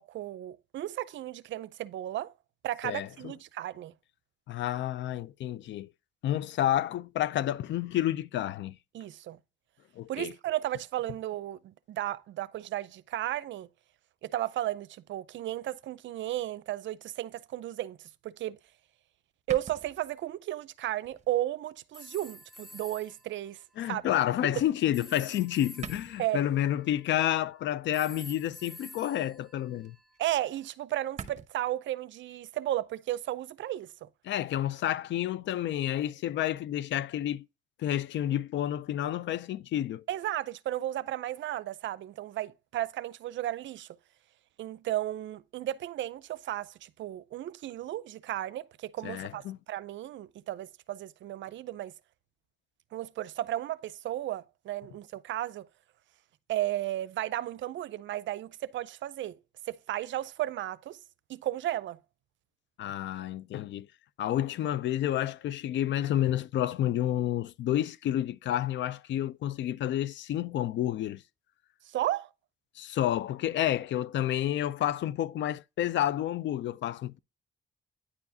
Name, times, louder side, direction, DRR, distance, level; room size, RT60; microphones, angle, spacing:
voice 1, 0.0-2.3 2.6-3.9 8.9-9.4 10.1-13.7 14.2-18.0 18.2-18.6 19.5-23.6 23.9-24.0 24.4-24.5 26.2-26.4 30.2-34.1 40.1-43.9 44.6-49.4 49.7-51.9 52.9-55.7 56.5-59.4 59.7-61.0 61.3-62.0 71.8-72.3, right 13 dB, 70° right, 0.5 m, -34 dB
voice 2, 4.5-5.9 6.2-8.7 10.0-10.3 23.8-29.9 34.3-37.4 37.8-40.0 49.0-49.6 62.8-63.9 64.2-71.2 72.8-77.2, left 12 dB, 65° left, 0.4 m, -30 dB
sound 1, 18.7-18.8 19.5-20.4 21.0-21.3 21.8-21.9 23.1-23.2 24.9-25.2 25.5-25.6 25.8-26.4 28.4-28.9 29.2-29.5 29.8-29.9 30.1-30.2 30.5-30.6 30.9-31.5, right 7 dB, 35° right, 0.9 m, -45 dB
sound 2, 21.9-23.3 24.9-27.4 27.9-30.2, equal, ahead, 0.7 m, -49 dB
9.7 x 4.7 x 2.7 m
cardioid pair, 90°, 20 cm